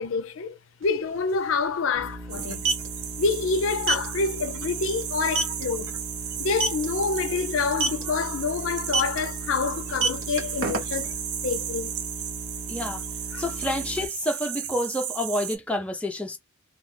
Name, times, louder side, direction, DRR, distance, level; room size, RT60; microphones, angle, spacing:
voice 1, 0.0-2.6 3.2-5.9 6.4-11.1 11.4-11.9 13.3-13.4, left 4 dB, 65° left, 0.4 m, -27 dB
sound 1, 0.8-0.9 1.2-1.3 2.4-2.9 3.8-4.1 4.5-4.7 5.0-5.1 5.3-5.6 6.5-6.8 7.7-8.0 8.9-9.2 9.8-11.1, right 3 dB, 60° right, 0.9 m, -24 dB
sound 2, 2.0-14.1, right 1 dB, 20° right, 0.8 m, -39 dB
sound 3, 2.3-15.6, right 9 dB, 85° right, 0.6 m, -35 dB
voice 2, 12.7-13.0 13.4-16.4, left 1 dB, 5° left, 0.4 m, -29 dB
2.4 x 2.4 x 3.1 m
head